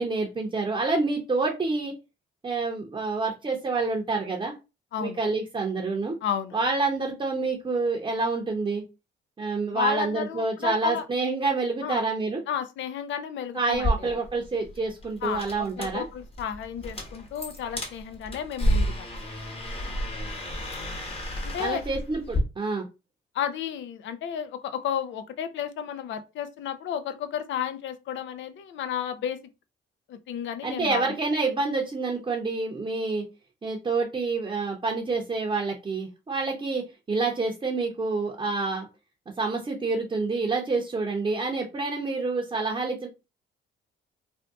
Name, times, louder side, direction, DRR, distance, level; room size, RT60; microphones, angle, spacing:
voice 1, 0.0-1.9 2.4-4.5 5.0-6.2 6.5-8.8 9.4-12.4 13.5-16.0 21.6-22.9 30.6-33.3 33.6-38.9 39.4-43.1, right 3 dB, 25° right, 0.7 m, -28 dB
voice 2, 6.2-6.6 9.7-11.0 11.8-12.0 12.5-14.1 15.2-19.2 21.4-21.8 23.3-29.4 30.1-31.0, left 9 dB, 70° left, 0.5 m, -32 dB
sound 1, 13.7-22.4, equal, 30° left, 1.1 m, -31 dB
2.6 x 2.3 x 3.5 m
cardioid pair, 90°, 20 cm